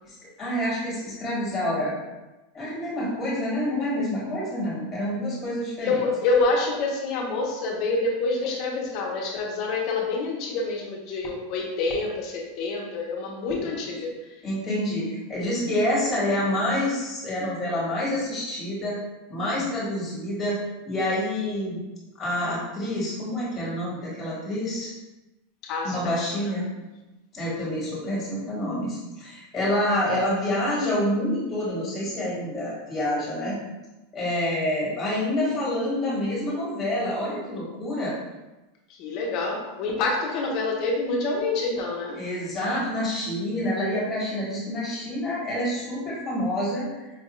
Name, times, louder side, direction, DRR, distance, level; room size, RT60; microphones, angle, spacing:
voice 1, 0.0-1.9 2.5-6.0 14.4-19.0 19.3-20.6 20.8-21.8 22.2-24.9 25.8-26.6 27.3-33.6 34.1-38.2 42.2-47.1, left 1 dB, 10° left, -6 dB, 1.4 m, -27 dB
voice 2, 5.8-14.3 25.6-26.5 38.9-42.2, left 3 dB, 40° left, -1 dB, 0.7 m, -27 dB
4.9 x 2.3 x 3.0 m, 1.1 s
supercardioid pair, 170°, 0 cm